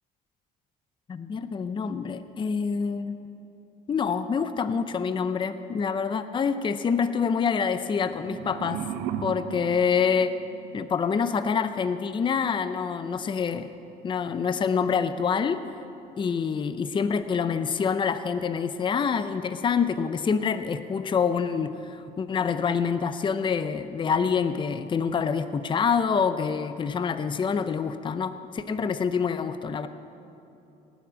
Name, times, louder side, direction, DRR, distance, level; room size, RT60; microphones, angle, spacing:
voice 1, 1.1-3.2 3.9-8.8 9.2-10.3 10.7-13.7 14.0-15.6 16.2-29.9, left 6 dB, 30° left, 11 dB, 0.6 m, -26 dB
sound 1, 7.9-10.9, right 8 dB, 90° right, 0.8 m, -36 dB
18.0 x 7.2 x 7.5 m, 2.8 s
cardioid pair, 110°, 17 cm